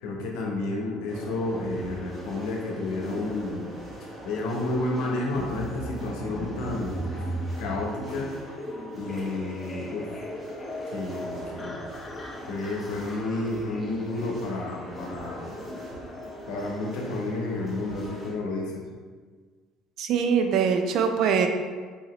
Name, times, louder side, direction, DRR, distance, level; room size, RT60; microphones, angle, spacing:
voice 1, 0.0-3.7 4.2-7.0 7.6-8.3 8.9-10.2 10.9-11.8 12.5-15.5 16.5-18.8, left 2 dB, 85° left, 0 dB, 0.7 m, -31 dB
sound 1, 1.1-18.3, equal, 10° right, 1.4 m, -42 dB
sound 2, 5.3-17.2, equal, 20° left, 0.6 m, -39 dB
voice 2, 20.0-21.5, right 6 dB, 65° right, 5 dB, 0.4 m, -23 dB
4.1 x 2.9 x 2.9 m, 1.5 s
cardioid pair, 115°, 0 cm